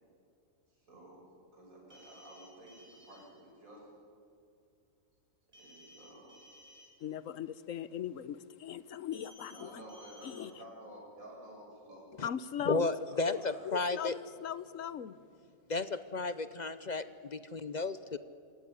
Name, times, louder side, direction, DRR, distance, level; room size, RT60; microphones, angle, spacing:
voice 1, 0.8-1.2 1.5-3.9 5.5-6.3 9.5-12.1 13.1-13.7, right 1 dB, 90° right, 7.6 m, -52 dB
sound 1, 1.9-3.2 5.5-6.9 9.1-9.6 9.9-10.4, equal, 25° right, 6.8 m, -57 dB
voice 2, 7.0-9.8 10.2-10.5 12.2-12.9 13.3-15.2, left 9 dB, 70° left, 1.2 m, -39 dB
voice 3, 12.6-14.1 15.7-18.2, left 3 dB, 45° left, 0.7 m, -33 dB
27.0 x 16.5 x 9.9 m
omnidirectional pair, 1.4 m